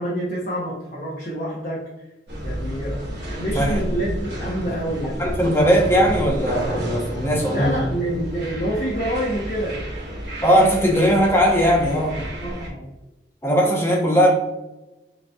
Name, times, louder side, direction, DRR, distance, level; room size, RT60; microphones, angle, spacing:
voice 1, 0.0-1.9 2.4-5.2 7.5-9.8 12.4-12.9, right 1 dB, 45° left, -6 dB, 0.8 m, -27 dB
sound 1, 2.3-12.7, equal, 70° right, 1.2 m, -30 dB
voice 2, 5.2-7.8 10.4-12.2 13.4-14.3, equal, 15° left, -2 dB, 0.8 m, -19 dB
5.1 x 3.1 x 2.3 m, 0.99 s
head